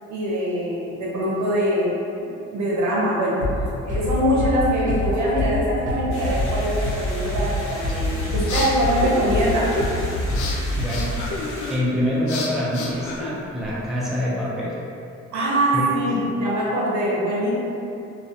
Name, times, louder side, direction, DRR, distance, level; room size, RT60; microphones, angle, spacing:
voice 1, 0.1-3.4 3.8-9.7 15.3-17.5, right 1 dB, 65° right, -6 dB, 0.7 m, -23 dB
sound 1, 3.4-11.2, left 1 dB, 25° right, 0.9 m, -26 dB
sound 2, 6.1-11.8, left 1 dB, 45° left, 0.8 m, -37 dB
sound 3, 8.2-13.9, left 3 dB, 75° left, 0.5 m, -31 dB
voice 2, 10.7-11.2 11.7-14.7 15.7-15.9, left 1 dB, ahead, -7 dB, 0.5 m, -25 dB
2.3 x 2.3 x 2.6 m, 2.6 s
cardioid pair, 90°, 30 cm